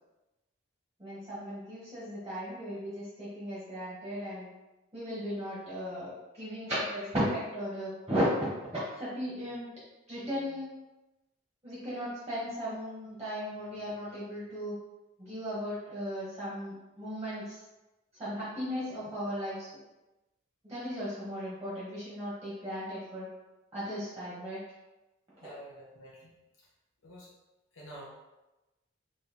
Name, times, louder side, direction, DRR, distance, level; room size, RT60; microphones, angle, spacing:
voice 1, 1.0-4.5 4.9-9.7 10.1-10.7 11.6-14.8 15.2-17.6 18.1-19.7 20.6-23.3 23.7-24.6 25.4-25.5, equal, 15° right, -9 dB, 1.2 m, -36 dB
voice 2, 25.4-26.3 27.0-27.3 27.7-28.1, right 1 dB, 80° left, -5 dB, 0.9 m, -48 dB
3.1 x 2.9 x 4.1 m, 1.0 s
head